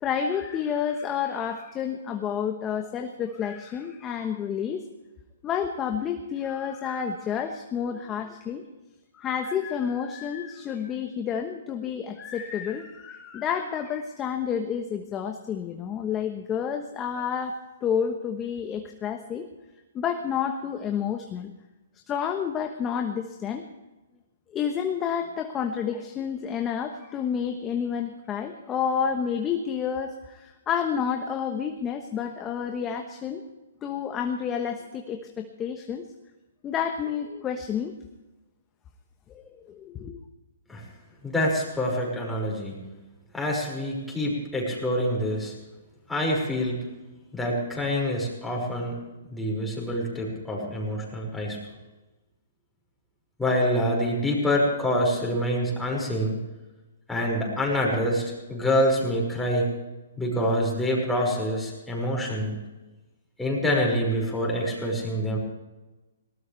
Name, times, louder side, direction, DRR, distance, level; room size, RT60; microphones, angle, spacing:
voice 1, 0.0-4.8 5.4-8.6 9.2-19.5 19.9-21.5 22.1-23.6 24.5-33.4 33.8-36.1 36.6-38.0 39.3-40.2, left 7 dB, 20° left, 5 dB, 1.2 m, -30 dB
voice 2, 41.2-42.7 43.3-45.5 46.1-46.8 47.3-49.0 49.3-51.6 53.4-56.3 57.1-59.7 60.2-62.6 63.4-65.4, equal, 5° left, -3 dB, 5.9 m, -26 dB
20.0 x 18.5 x 3.4 m, 1.1 s
hypercardioid pair, 145°, 0 cm